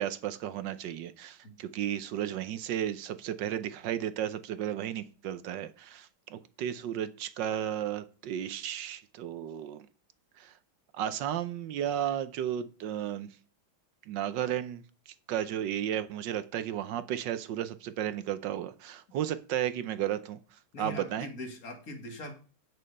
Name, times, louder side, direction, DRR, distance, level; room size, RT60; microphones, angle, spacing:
voice 1, 0.0-9.9 10.4-10.5 10.9-13.3 14.1-20.4 20.8-21.3, right 10 dB, 70° right, 1.2 m, -34 dB
voice 2, 20.7-22.3, left 1 dB, 45° left, 2.3 m, -41 dB
8.8 x 6.5 x 5.4 m
omnidirectional pair, 2.3 m